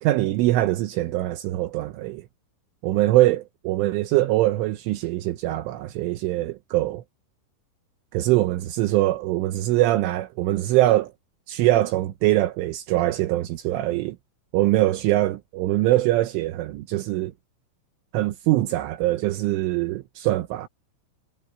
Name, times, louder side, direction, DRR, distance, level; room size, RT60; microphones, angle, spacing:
voice 1, 0.0-2.2 2.8-7.0 8.1-11.1 11.5-14.2 14.5-17.3 18.1-20.7, right 16 dB, 80° right, 3.3 m, -23 dB
omnidirectional pair, 5.9 m